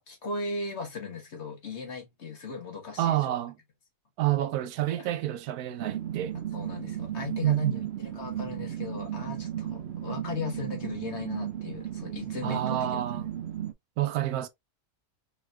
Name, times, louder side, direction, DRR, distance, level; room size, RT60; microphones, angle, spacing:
voice 1, 0.1-3.3 4.9-5.1 6.5-13.3, left 4 dB, 50° left, 1.5 m, -37 dB
voice 2, 3.0-3.5 4.2-6.4 7.4-7.8 12.4-13.3 14.0-14.5, right 13 dB, 85° right, 1.1 m, -28 dB
sound 1, 5.8-13.7, right 11 dB, 65° right, 0.7 m, -35 dB
5.4 x 3.0 x 2.3 m
omnidirectional pair, 1.6 m